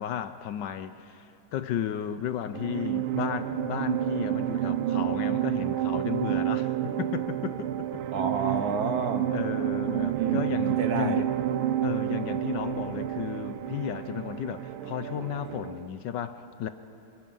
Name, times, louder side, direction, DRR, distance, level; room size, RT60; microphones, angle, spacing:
voice 1, 0.0-8.0 9.3-11.3 11.8-16.7, left 9 dB, 70° left, 11 dB, 1.2 m, -34 dB
sound 1, 2.5-15.9, right 12 dB, 85° right, 1.5 m, -29 dB
voice 2, 8.1-9.3 10.1-10.4 10.8-11.2, right 5 dB, 55° right, 8 dB, 1.3 m, -30 dB
27.5 x 18.5 x 5.5 m, 2.7 s
omnidirectional pair, 2.2 m